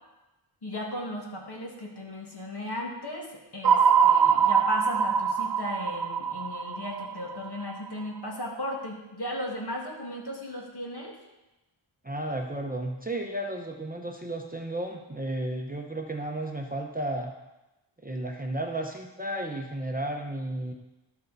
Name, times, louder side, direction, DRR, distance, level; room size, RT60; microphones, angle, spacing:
voice 1, 0.6-11.2, left 1 dB, 50° left, -1 dB, 2.1 m, -36 dB
sound 1, 3.6-7.9, right 7 dB, 50° right, 0.6 m, -23 dB
voice 2, 12.0-17.3 18.0-20.7, right 1 dB, 20° right, 1 dB, 0.8 m, -33 dB
12.0 x 6.5 x 4.0 m, 1.0 s
wide cardioid pair, 95°, 48 cm